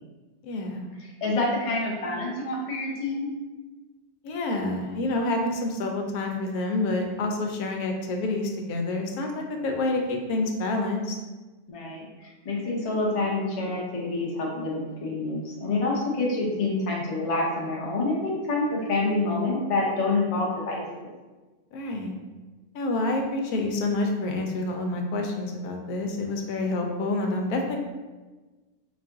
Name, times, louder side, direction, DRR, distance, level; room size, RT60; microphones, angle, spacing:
voice 1, 0.4-0.9 4.2-11.2 21.7-22.1 22.7-27.8, left 2 dB, 85° left, 2 dB, 1.1 m, -28 dB
voice 2, 1.2-3.3 11.7-21.1, left 2 dB, 35° left, -3 dB, 0.5 m, -27 dB
3.8 x 2.4 x 3.6 m, 1.3 s
omnidirectional pair, 1.6 m